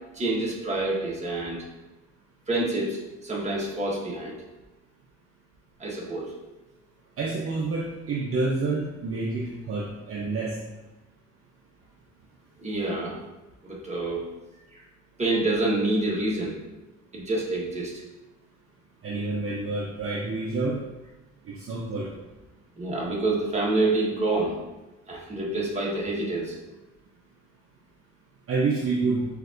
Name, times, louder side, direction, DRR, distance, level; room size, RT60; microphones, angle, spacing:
voice 1, 0.1-1.7 2.5-4.4 5.8-6.3 12.6-13.2 13.6-14.3 14.7-14.8 15.2-16.5 17.1-17.9 22.8-24.6 25.1-26.6, right 2 dB, 20° right, -4 dB, 1.3 m, -27 dB
voice 2, 7.2-10.6 19.0-20.8 21.5-22.1 28.5-29.3, right 3 dB, 50° right, -2 dB, 0.6 m, -28 dB
6.3 x 2.6 x 2.5 m, 1.1 s
cardioid pair, 90°, 30 cm